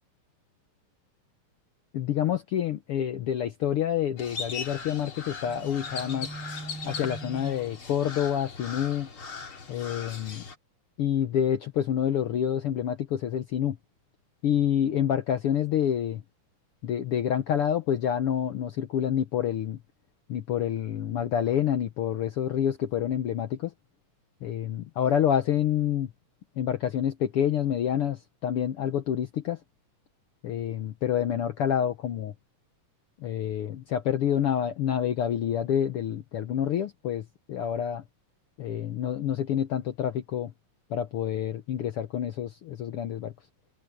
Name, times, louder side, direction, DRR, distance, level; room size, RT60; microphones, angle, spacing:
voice 1, 1.9-6.3 6.8-9.1 9.7-10.4 11.0-13.8 14.4-16.2 16.8-19.8 20.3-23.7 24.4-26.1 26.6-29.6 30.4-32.3 33.2-38.0 38.6-40.5 40.9-43.3, left 9 dB, 70° left, 1.4 m, -28 dB
Crow, 4.2-10.5, left 3 dB, 45° left, 3.5 m, -38 dB
omnidirectional pair, 3.6 m